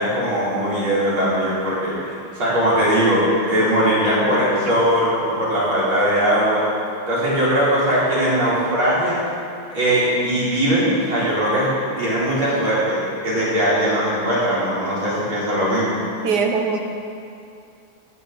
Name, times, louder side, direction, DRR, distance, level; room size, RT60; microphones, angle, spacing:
voice 1, 0.0-1.9 2.3-6.7 7.1-9.2 9.7-11.7 12.0-16.0, equal, 70° right, -9 dB, 4.8 m, -20 dB
voice 2, 16.2-16.8, right 5 dB, 55° right, 3 dB, 1.5 m, -20 dB
14.0 x 6.4 x 7.7 m, 2.5 s
omnidirectional pair, 2.4 m